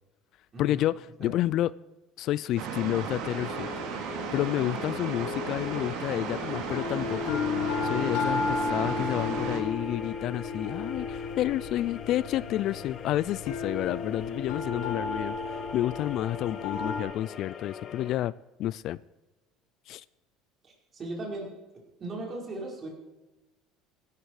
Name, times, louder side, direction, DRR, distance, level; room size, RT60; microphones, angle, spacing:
voice 1, 0.6-1.7 2.2-3.7 4.3-18.3 18.6-19.0 19.9-20.0, left 13 dB, 55° left, 0.4 m, -30 dB
sound 1, 2.6-9.6, right 6 dB, 70° right, 2.7 m, -35 dB
sound 2, 3.2-18.2, left 7 dB, 40° left, 1.5 m, -43 dB
sound 3, 6.6-17.0, left 4 dB, 85° left, 3.3 m, -33 dB
voice 2, 20.6-21.5 22.0-22.9, right 2 dB, 30° right, 5.2 m, -37 dB
16.0 x 12.5 x 4.8 m
supercardioid pair, 115°, 0 cm